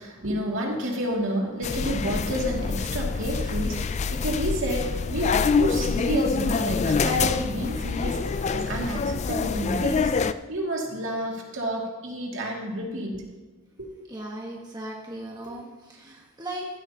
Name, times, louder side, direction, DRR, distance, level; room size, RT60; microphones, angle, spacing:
voice 1, 0.0-13.2 13.8-13.9, equal, 60° right, -1 dB, 2.5 m, -29 dB
sound 1, 1.6-10.3, left 5 dB, 30° left, 0.3 m, -26 dB
voice 2, 14.1-16.7, right 1 dB, 20° right, -2 dB, 1.4 m, -37 dB
15.5 x 12.5 x 2.9 m, 1.3 s
head